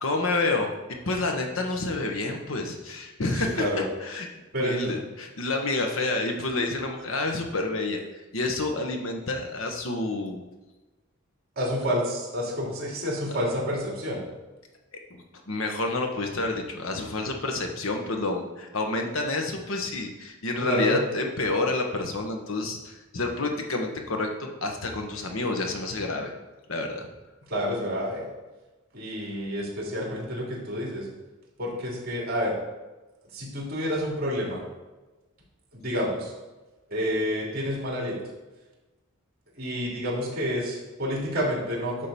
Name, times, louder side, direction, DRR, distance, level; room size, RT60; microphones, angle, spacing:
voice 1, 0.0-0.7 1.1-3.6 4.0-4.3 4.6-8.0 8.3-10.4 15.1-26.3 26.7-27.1, left 2 dB, 75° left, 3 dB, 1.2 m, -29 dB
voice 2, 3.3-3.8 4.5-4.9 11.6-14.2 20.6-21.0 27.5-28.3 28.9-31.1 31.6-32.6 33.3-34.6 35.7-36.3 36.9-38.2 39.6-42.1, equal, 50° right, -3 dB, 2.7 m, -29 dB
9.8 x 3.8 x 6.9 m, 1.2 s
head